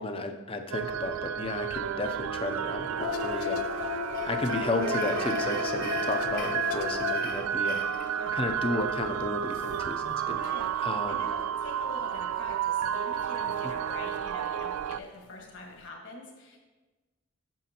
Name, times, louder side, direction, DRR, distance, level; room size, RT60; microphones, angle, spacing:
voice 1, 0.0-4.0 4.2-11.2, left 2 dB, 25° left, 6 dB, 0.5 m, -33 dB
sound 1, 0.7-15.0, right 9 dB, 85° right, 0.3 m, -32 dB
sound 2, 3.0-7.7 8.1-8.5 8.8-10.7 11.4-11.6 13.4-13.9 14.1-14.2 14.9-15.4 15.8-15.9, left 9 dB, 85° left, 0.3 m, -35 dB
sound 3, 3.5-9.0, left 3 dB, 40° left, 1.0 m, -43 dB
voice 2, 10.3-16.6, left 2 dB, 60° left, 0 dB, 1.5 m, -44 dB
9.1 x 6.6 x 2.9 m, 1.2 s
head